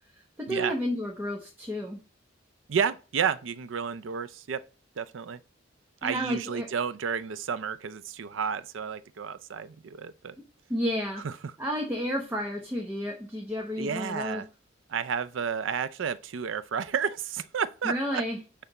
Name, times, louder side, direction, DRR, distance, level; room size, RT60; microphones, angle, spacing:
voice 1, 0.4-2.0 6.0-6.7 10.7-11.2 11.6-14.4 17.8-18.4, equal, 10° right, 1.0 m, -31 dB
voice 2, 2.7-4.6 5.0-5.4 6.0-10.4 11.2-11.3 13.8-14.5 14.9-18.2, right 6 dB, 75° right, 0.5 m, -31 dB
9.4 x 3.4 x 4.0 m
head